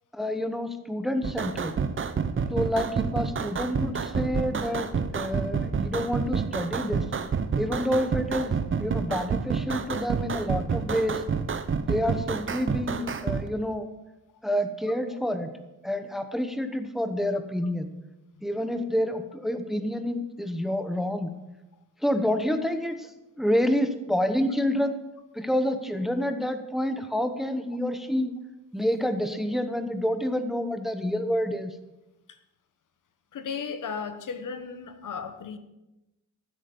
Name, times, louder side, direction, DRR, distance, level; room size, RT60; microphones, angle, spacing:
voice 1, 0.1-1.8 2.5-7.0 7.6-8.5 8.8-11.2 11.9-13.9 14.4-15.6 15.8-17.9 18.4-21.3 22.0-23.1 23.4-25.0 25.3-28.3 28.7-31.7, equal, ahead, 1.0 m, -28 dB
sound 1, 1.2-13.4, right 6 dB, 35° right, 0.9 m, -29 dB
voice 2, 33.3-35.6, left 6 dB, 65° left, 1.3 m, -36 dB
14.5 x 8.2 x 7.0 m
wide cardioid pair, 125°, 33 cm